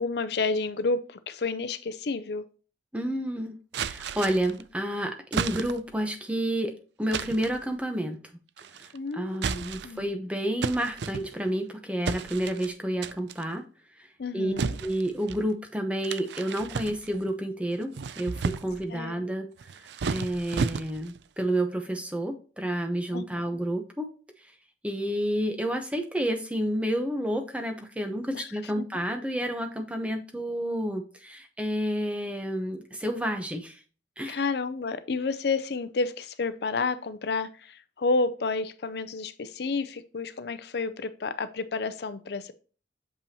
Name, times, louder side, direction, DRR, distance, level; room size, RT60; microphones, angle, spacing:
voice 1, 0.0-2.4 8.9-10.1 14.2-14.8 18.9-19.2 23.1-23.4 28.3-28.5 28.8-28.9 34.3-42.5, left 4 dB, 60° left, 12 dB, 0.5 m, -30 dB
voice 2, 2.9-6.7 7.0-8.2 8.7-13.6 14.0-14.1 14.3-14.5 14.8-24.1 24.8-33.8 34.2-34.4, right 1 dB, 5° right, 5 dB, 0.8 m, -30 dB
sound 1, 3.7-4.6 5.3-6.0 7.1-7.6 8.6-9.0 9.3-10.1 10.6-11.6 12.1-12.7 13.0-13.4 14.6-15.4 16.0-17.3 17.8-18.9 19.6-21.2, right 5 dB, 70° right, 0.4 m, -33 dB
6.8 x 5.4 x 2.8 m, 0.38 s
head